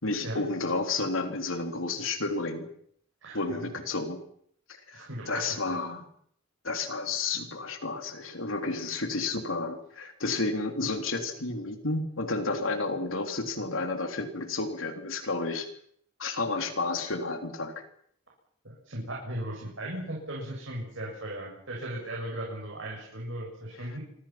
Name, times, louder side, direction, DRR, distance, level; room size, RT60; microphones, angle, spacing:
voice 1, 0.0-2.7 3.3-4.2 4.9-6.0 6.6-15.7 16.2-17.8, left 3 dB, 85° left, 5 dB, 3.4 m, -31 dB
voice 2, 3.2-3.8 4.9-5.8 18.6-24.0, right 1 dB, 70° right, -3 dB, 7.5 m, -37 dB
26.5 x 25.0 x 6.0 m, 0.66 s
head